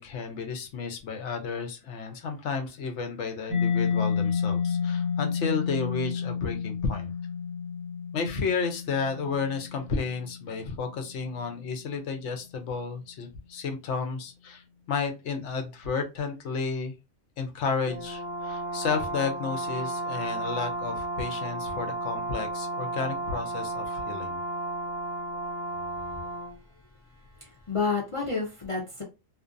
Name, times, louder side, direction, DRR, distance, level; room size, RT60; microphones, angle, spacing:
voice 1, 0.0-7.1 8.1-16.9 17.4-24.4, left 5 dB, 70° left, 5 dB, 0.9 m, -32 dB
Mallet percussion, 3.5-11.0, left 6 dB, 30° right, 0.6 m, -30 dB
Brass instrument, 17.8-26.6, right 2 dB, 5° right, 1.0 m, -33 dB
voice 2, 26.0-29.0, left 4 dB, 35° left, -2 dB, 0.6 m, -32 dB
2.4 x 2.2 x 2.4 m, 0.28 s
omnidirectional pair, 1.3 m